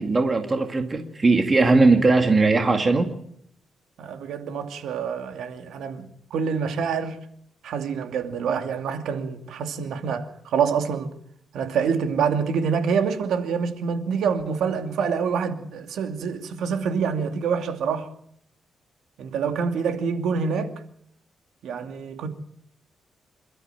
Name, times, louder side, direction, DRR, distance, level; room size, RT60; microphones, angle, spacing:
voice 1, 0.0-3.1, right 3 dB, 25° right, 2.2 m, -19 dB
voice 2, 4.0-7.2 7.6-11.1 11.5-18.1 19.2-20.7 21.6-22.3, right 6 dB, 85° right, 2.5 m, -26 dB
27.5 x 13.0 x 9.2 m
cardioid pair, 140°, 0 cm